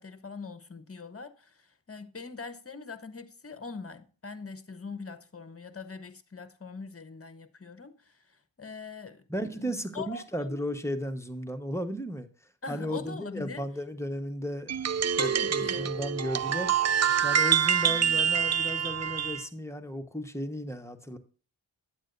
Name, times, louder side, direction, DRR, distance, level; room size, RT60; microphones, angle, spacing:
voice 1, 0.0-9.2 9.5-10.7 12.6-13.6 15.2-15.9 17.8-18.2, left 4 dB, 30° left, 1.1 m, -42 dB
voice 2, 9.3-12.3 12.7-14.7 15.1-16.7 17.2-21.2, equal, 5° left, 1.2 m, -35 dB
sound 1, 14.7-19.4, right 8 dB, 40° right, 0.4 m, -26 dB
8.8 x 8.7 x 2.6 m
cardioid pair, 45°, 44 cm